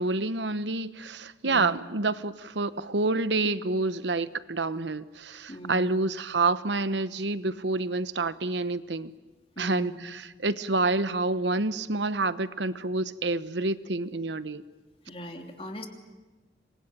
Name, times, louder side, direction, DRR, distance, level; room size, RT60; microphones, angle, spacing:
voice 1, 0.0-9.1 9.6-14.6, right 3 dB, 85° right, 14 dB, 1.1 m, -28 dB
voice 2, 1.4-1.8 5.5-6.0 9.6-10.0 15.1-15.9, equal, 30° left, 4 dB, 3.0 m, -40 dB
26.5 x 23.5 x 9.1 m, 1.2 s
head